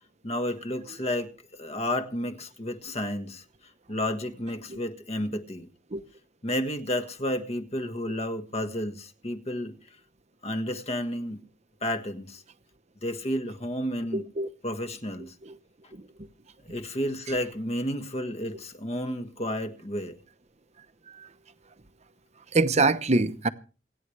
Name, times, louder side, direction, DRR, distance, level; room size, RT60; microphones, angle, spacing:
voice 1, 0.2-3.4 3.9-5.7 6.4-9.8 10.4-11.4 11.8-12.4 13.0-14.2 14.6-15.3 16.7-20.2, left 1 dB, 35° left, 1.6 m, -31 dB
voice 2, 14.1-14.5 15.4-15.6 15.9-16.1 21.2-21.3 22.5-23.5, right 3 dB, 35° right, 0.9 m, -25 dB
28.0 x 9.9 x 3.3 m
head